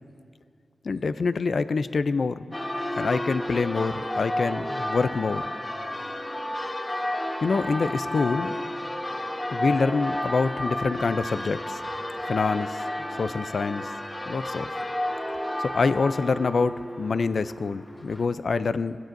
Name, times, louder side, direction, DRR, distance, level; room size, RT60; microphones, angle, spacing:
voice 1, 0.8-2.6 2.9-5.5 7.4-8.5 9.5-11.8 12.3-12.8 13.2-13.9 14.3-14.8 15.6-19.0, left 4 dB, 65° left, 12 dB, 0.4 m, -26 dB
Church bell, 2.5-18.3, left 1 dB, 20° left, 1.1 m, -32 dB
18.0 x 16.5 x 2.6 m, 2.3 s
wide cardioid pair, 80°, 0 cm